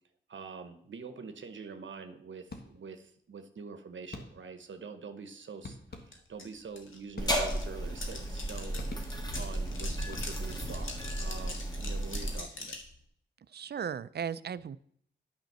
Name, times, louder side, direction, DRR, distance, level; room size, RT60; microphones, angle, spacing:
voice 1, 0.3-12.8, right 5 dB, 75° right, 7 dB, 0.9 m, -45 dB
sound 1, 2.5-3.1 4.1-4.7 5.6-6.5 7.1-7.9 8.8-9.5 10.0-10.7, left 3 dB, 55° left, 1.5 m, -47 dB
sound 2, 6.1-6.2 6.4-12.9, left 3 dB, 85° left, 1.7 m, -43 dB
sound 3, 7.2-12.4, right 1 dB, 20° left, 1.9 m, -34 dB
voice 2, 13.5-14.8, right 7 dB, 55° right, 17 dB, 0.4 m, -36 dB
9.1 x 5.1 x 6.7 m, 0.66 s
cardioid pair, 65°, 20 cm